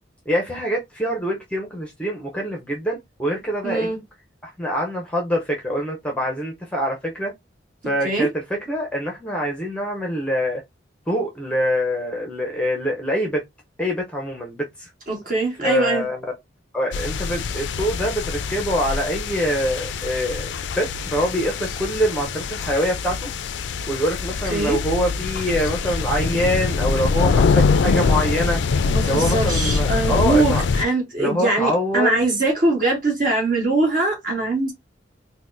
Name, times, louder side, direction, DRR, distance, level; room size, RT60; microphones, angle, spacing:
voice 1, 0.3-3.9 4.4-7.3 7.8-10.6 11.1-13.4 13.8-14.9 15.6-16.3 16.7-23.3 23.9-28.6 29.1-30.6 31.2-32.2, equal, 5° left, 0.6 m, -25 dB
voice 2, 3.6-4.0 8.0-8.3 15.1-16.0 24.5-24.8 28.9-34.7, right 2 dB, 45° right, 1.5 m, -22 dB
sound 1, 16.9-30.8, left 4 dB, 70° left, 0.3 m, -23 dB
4.1 x 2.1 x 2.5 m
head